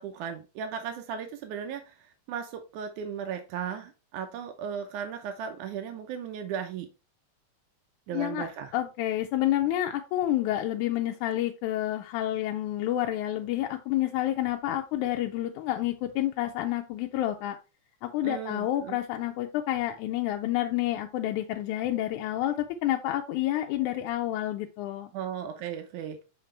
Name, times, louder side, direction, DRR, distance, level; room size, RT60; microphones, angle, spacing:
voice 1, 0.0-2.0 2.3-6.9 8.1-8.7 18.2-19.0 25.1-26.2, right 8 dB, 85° right, 2.3 m, -36 dB
voice 2, 8.1-8.5 8.7-17.6 18.0-25.1, left 13 dB, 90° left, 2.1 m, -29 dB
5.8 x 5.8 x 3.2 m
omnidirectional pair, 3.4 m